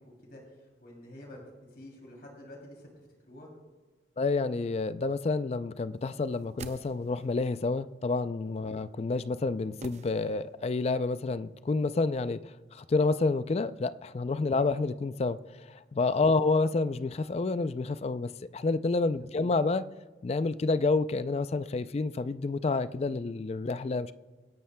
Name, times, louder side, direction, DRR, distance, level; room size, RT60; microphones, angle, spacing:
voice 1, 0.0-3.5 16.3-16.4 19.2-19.5, left 1 dB, 55° left, 3.0 m, -50 dB
voice 2, 4.2-19.8 20.2-24.1, left 3 dB, 35° left, 0.3 m, -29 dB
sound 1, 6.2-7.4 9.8-10.7 11.0-11.1, right 3 dB, 40° right, 0.6 m, -47 dB
26.0 x 11.0 x 2.2 m
head